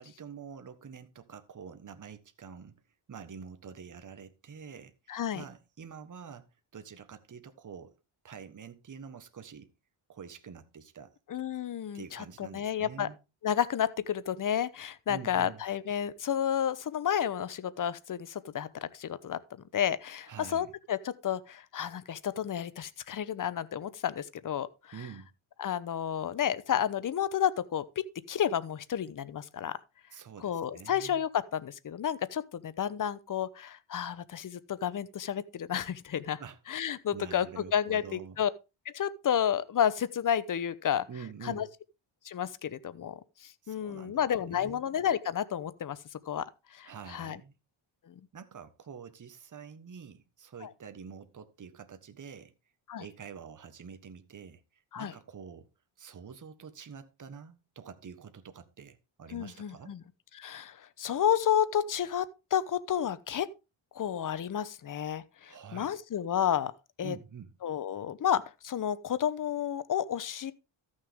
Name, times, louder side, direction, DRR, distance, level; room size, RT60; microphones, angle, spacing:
voice 1, 0.0-2.8 3.1-7.9 8.2-9.7 10.1-11.1 11.9-13.2 15.1-15.6 20.3-20.7 24.9-25.3 30.1-31.2 36.4-36.6 37.1-38.4 41.1-41.7 43.6-44.8 46.8-47.5 48.3-52.5 53.0-55.7 56.0-59.9 65.4-65.9 67.0-67.5, right 6 dB, 40° right, 1.4 m, -47 dB
voice 2, 5.1-5.4 11.3-13.1 13.4-19.4 19.7-24.9 25.6-29.8 30.4-36.4 36.7-38.5 38.9-41.1 41.4-41.7 42.2-46.0 46.3-47.4 48.1-48.2 50.6-50.7 52.9-53.1 54.9-55.1 59.3-60.0 60.3-63.5 63.9-66.7 67.0-67.2 67.6-70.5, left 9 dB, 40° left, 0.9 m, -31 dB
13.5 x 6.5 x 3.6 m
cardioid pair, 85°, 48 cm